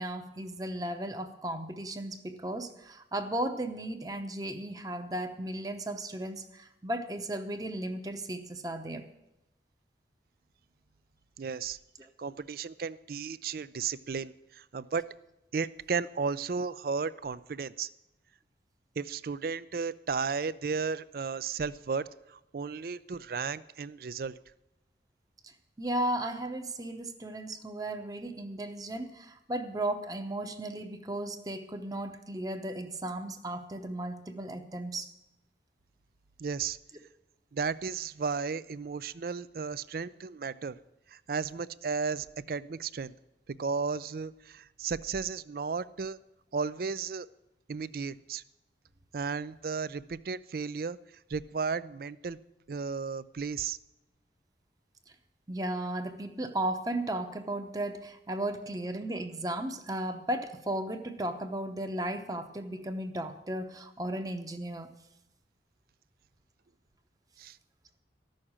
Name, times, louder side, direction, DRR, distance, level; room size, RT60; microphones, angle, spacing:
voice 1, 0.0-9.0 25.4-25.5 25.8-35.1 55.5-64.9, right 1 dB, 20° right, 7 dB, 0.8 m, -35 dB
voice 2, 11.4-11.8 12.2-15.1 15.5-17.9 19.0-24.4 36.4-36.8 37.5-40.8 41.1-43.1 43.6-46.2 46.5-47.3 47.7-48.4 49.1-51.0 51.3-52.4 52.7-53.8 67.4-67.6, right 5 dB, 55° right, 17 dB, 0.4 m, -34 dB
14.0 x 6.5 x 8.7 m, 0.90 s
head